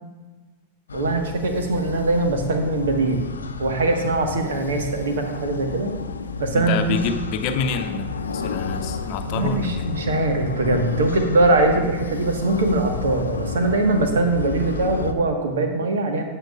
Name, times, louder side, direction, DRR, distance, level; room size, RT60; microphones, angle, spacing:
sound 1, 0.9-15.1, left 4 dB, 70° left, 0.6 m, -31 dB
voice 1, 0.9-3.2 3.6-5.9 6.4-7.0 9.3-16.2, right 2 dB, 65° right, 4 dB, 1.5 m, -22 dB
voice 2, 6.6-9.9, left 5 dB, 45° left, 7 dB, 0.8 m, -27 dB
15.5 x 9.0 x 2.5 m, 1.3 s
figure-of-eight pair, 90°, 0 cm